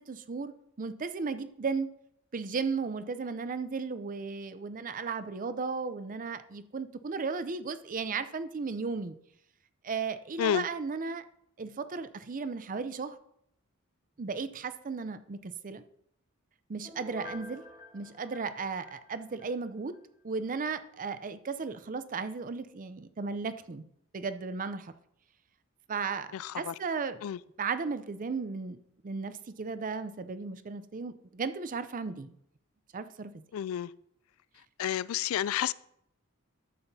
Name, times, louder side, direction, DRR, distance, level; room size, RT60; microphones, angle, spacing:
voice 1, 0.1-0.5 0.8-1.9 2.3-9.2 9.8-11.2 11.6-13.2 14.2-15.8 16.7-17.6 17.9-20.0 20.2-23.8 24.1-24.9 25.9-27.2 27.6-28.8 29.0-32.3 32.9-33.3, right 4 dB, 40° right, 0.5 m, -35 dB
Piano, 16.9-19.5 19.9-20.0, left 1 dB, 20° right, 1.4 m, -48 dB
voice 2, 26.3-26.7 27.2-27.4 33.5-33.9 34.8-35.7, left 10 dB, 70° left, 0.3 m, -30 dB
12.0 x 7.9 x 2.7 m
head